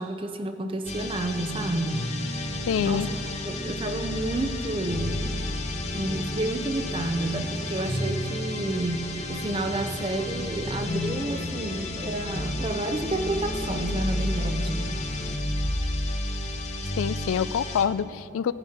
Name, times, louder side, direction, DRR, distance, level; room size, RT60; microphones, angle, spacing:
voice 1, 0.0-2.0 2.8-3.0 3.5-5.3 5.9-14.8, right 2 dB, 25° right, 8 dB, 0.6 m, -30 dB
sound 1, 0.8-17.8, left 1 dB, 35° left, 1.0 m, -31 dB
voice 2, 2.7-3.1 17.0-18.5, left 7 dB, 80° left, 16 dB, 0.3 m, -26 dB
17.0 x 10.5 x 4.3 m, 2.9 s
head